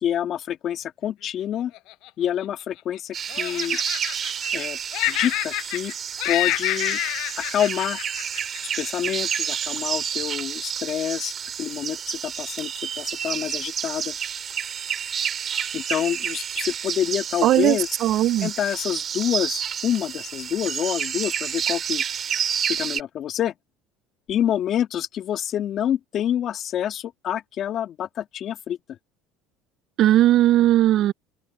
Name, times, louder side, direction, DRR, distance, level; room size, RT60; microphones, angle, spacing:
voice 1, 0.0-1.7 2.2-3.8 4.5-4.8 5.1-5.9 6.2-7.0 7.4-8.0 8.8-11.3 11.6-14.1 15.7-17.9 18.4-22.0 22.7-23.5 24.3-29.0, left 10 dB, 50° left, 2.3 m, -27 dB
Laughter, 1.7-3.0 3.3-4.7 4.9-5.9 6.2-8.8, left 19 dB, 65° left, 5.3 m, -28 dB
sound 1, 3.1-23.0, right 8 dB, 40° right, 3.1 m, -30 dB
voice 2, 17.4-18.5 30.0-31.1, right 13 dB, 55° right, 0.6 m, -18 dB
supercardioid pair, 95°, 0 cm